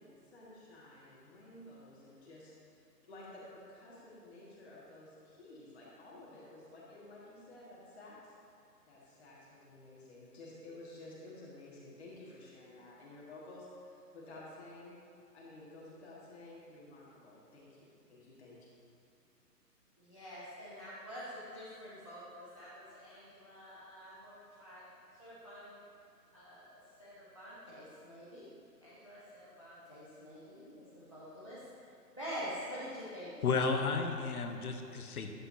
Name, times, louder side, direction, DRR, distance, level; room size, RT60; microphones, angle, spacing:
voice 1, 0.0-2.5 3.0-8.4 8.8-14.9 15.3-18.6, left 2 dB, 40° left, -7 dB, 1.8 m, -53 dB
voice 2, 20.0-24.8 25.2-25.8 26.3-28.5 28.8-33.3, equal, 20° left, -10 dB, 0.5 m, -47 dB
voice 3, 33.4-35.3, left 4 dB, 60° left, 5 dB, 0.9 m, -33 dB
11.5 x 7.8 x 2.7 m, 2.5 s
figure-of-eight pair, 150°, 49 cm